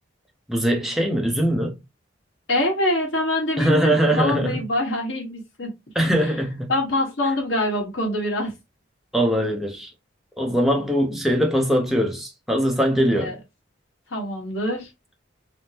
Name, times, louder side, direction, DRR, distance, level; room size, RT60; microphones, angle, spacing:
voice 1, 0.5-1.8 3.6-4.6 5.9-6.7 9.1-9.9 10.4-13.4, equal, ahead, 0.5 m, -21 dB
voice 2, 2.5-5.7 6.2-6.4 6.7-8.5 13.1-13.3 14.1-14.9, left 1 dB, 75° left, 1.1 m, -25 dB
3.5 x 2.0 x 2.7 m
head